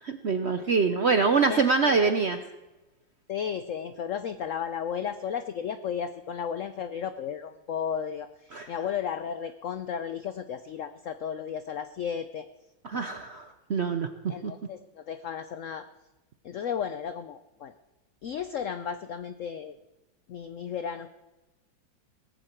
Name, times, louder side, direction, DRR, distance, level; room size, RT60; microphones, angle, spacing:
voice 1, 0.0-2.4 8.5-8.7 12.8-14.1 14.4-14.5, right 4 dB, 60° right, 8 dB, 0.7 m, -25 dB
voice 2, 1.5-2.4 3.3-12.5 12.9-13.1 14.3-15.9 16.4-17.7 18.2-19.8 20.3-21.1, left 8 dB, 75° left, 11 dB, 0.7 m, -34 dB
17.5 x 14.5 x 4.5 m, 1.1 s
omnidirectional pair, 2.0 m